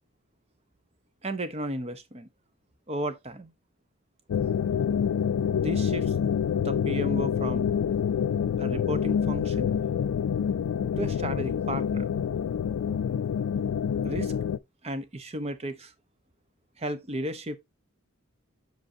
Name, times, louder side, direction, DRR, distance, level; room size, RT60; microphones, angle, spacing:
voice 1, 1.2-2.3 2.9-3.5 5.5-6.1 6.6-7.7 8.6-9.7 11.0-12.1 14.0-14.3 14.8-15.9 16.8-17.6, right 1 dB, 30° right, 0.7 m, -34 dB
sound 1, 4.3-14.6, left 8 dB, 85° left, 0.3 m, -27 dB
7.7 x 5.3 x 2.6 m
head